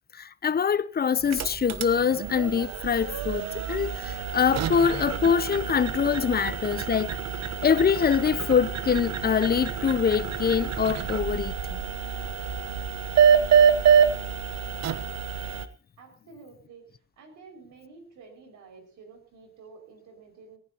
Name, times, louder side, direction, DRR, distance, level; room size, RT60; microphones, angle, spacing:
voice 1, 0.2-7.2 7.6-11.8, left 7 dB, 30° left, 0.7 m, -24 dB
sound 1, 1.2-15.7, right 7 dB, 60° right, 1.1 m, -26 dB
voice 2, 16.0-16.9 17.2-20.6, right 4 dB, 75° right, 6.0 m, -50 dB
18.5 x 16.0 x 3.0 m
cardioid pair, 90°, 30 cm